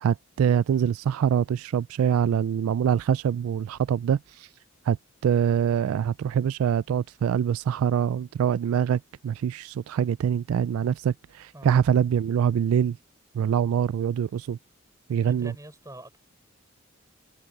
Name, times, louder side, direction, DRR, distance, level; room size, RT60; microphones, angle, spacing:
voice 1, 0.0-4.5 4.9-5.0 5.2-13.0 13.3-14.6 15.1-15.5, right 8 dB, 90° right, 0.3 m, -24 dB
voice 2, 15.1-16.2, right 1 dB, 15° right, 6.2 m, -45 dB
head